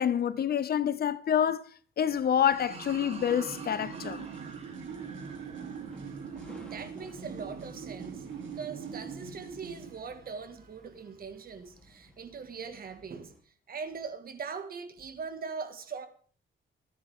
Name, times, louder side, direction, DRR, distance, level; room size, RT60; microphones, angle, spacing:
voice 1, 0.0-1.6 2.0-4.2, left 9 dB, 50° left, 0.8 m, -27 dB
sound 1, 2.1-13.4, equal, 5° left, 3.3 m, -56 dB
sound 2, 2.5-9.0, right 4 dB, 30° right, 2.4 m, -51 dB
sound 3, 2.5-10.0, right 6 dB, 70° right, 3.2 m, -42 dB
voice 2, 6.4-13.3 13.7-16.1, right 5 dB, 45° right, 1.9 m, -41 dB
24.0 x 9.5 x 3.7 m
wide cardioid pair, 155°, 20 cm